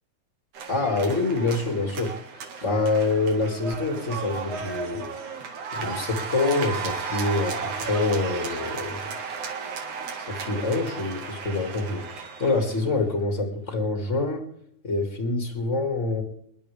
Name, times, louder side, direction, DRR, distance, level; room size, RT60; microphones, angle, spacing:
sound 1, 0.5-12.9, right 5 dB, 65° right, 3.3 m, -34 dB
voice 1, 0.7-5.1 5.7-9.1 10.2-14.4 14.8-16.2, left 3 dB, 25° left, 4 dB, 1.8 m, -26 dB
27.0 x 11.0 x 3.5 m, 0.71 s
omnidirectional pair, 3.7 m